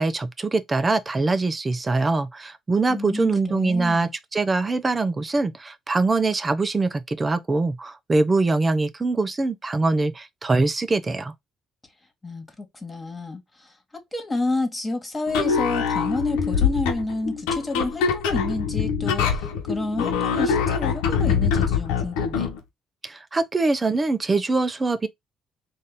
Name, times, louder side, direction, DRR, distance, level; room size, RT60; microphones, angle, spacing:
voice 1, 0.0-11.3 23.0-25.1, right 3 dB, 30° right, 0.7 m, -23 dB
voice 2, 2.9-4.1 12.2-13.8 14.1-22.5, left 2 dB, 25° left, 1.6 m, -30 dB
sound 1, 15.3-22.6, left 6 dB, 85° left, 1.0 m, -24 dB
3.9 x 2.7 x 3.6 m
hypercardioid pair, 55°, 0 cm